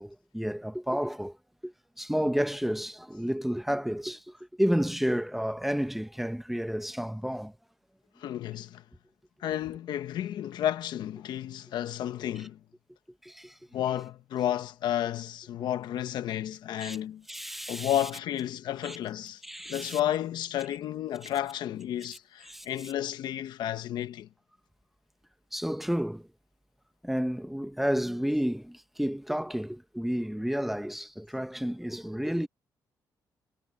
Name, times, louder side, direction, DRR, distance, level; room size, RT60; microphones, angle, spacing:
voice 1, 0.0-1.4 1.6-7.6 13.2-13.6 16.8-17.0 17.3-18.0 18.8-19.0 19.4-20.0 22.4-22.9 25.5-26.3 27.0-32.5, equal, 5° right, 1.1 m, -31 dB
voice 2, 8.2-8.8 9.4-12.6 13.7-17.2 17.7-24.3, left 11 dB, 80° left, 1.3 m, -32 dB
cardioid pair, 85°, 7 cm